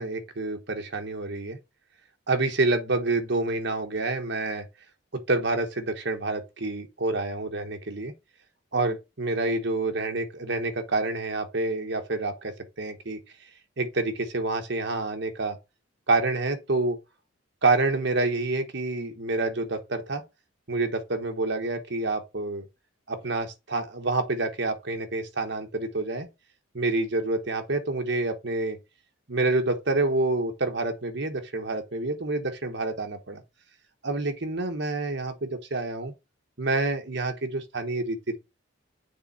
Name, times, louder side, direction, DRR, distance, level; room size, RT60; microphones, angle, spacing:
voice 1, 0.0-1.6 2.3-4.6 5.1-8.1 8.7-13.2 13.8-15.6 16.1-17.0 17.6-20.2 20.7-22.6 23.1-26.3 26.7-28.8 29.3-33.4 34.0-36.1 36.6-38.4, right 2 dB, 55° right, 1.1 m, -28 dB
6.8 x 3.4 x 4.3 m
head